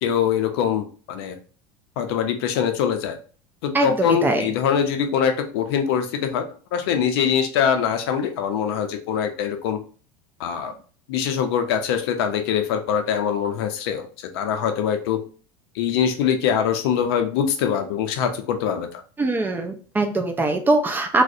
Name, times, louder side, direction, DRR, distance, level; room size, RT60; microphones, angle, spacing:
voice 1, 0.0-1.4 2.0-3.2 3.6-9.8 10.4-10.7 11.1-15.2 15.7-19.0, left 8 dB, 75° left, 7 dB, 0.5 m, -23 dB
voice 2, 3.7-4.5 19.2-21.2, right 2 dB, 15° right, 5 dB, 0.3 m, -22 dB
2.4 x 2.1 x 2.6 m, 0.40 s
supercardioid pair, 120°, 13 cm